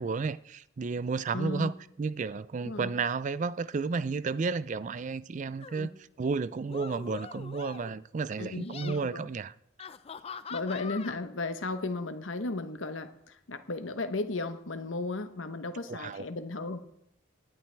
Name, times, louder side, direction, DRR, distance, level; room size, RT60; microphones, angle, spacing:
voice 1, 0.0-1.7 2.0-9.5 15.9-16.2, right 4 dB, 40° right, 0.4 m, -32 dB
voice 2, 1.3-1.7 2.6-2.9 5.8-5.9 8.4-9.3 10.5-16.8, left 3 dB, 90° left, 1.0 m, -35 dB
sound 1, 5.6-5.9 6.6-8.0 8.5-9.0 9.8-11.2, left 6 dB, 30° left, 0.4 m, -43 dB
19.0 x 11.0 x 3.4 m
head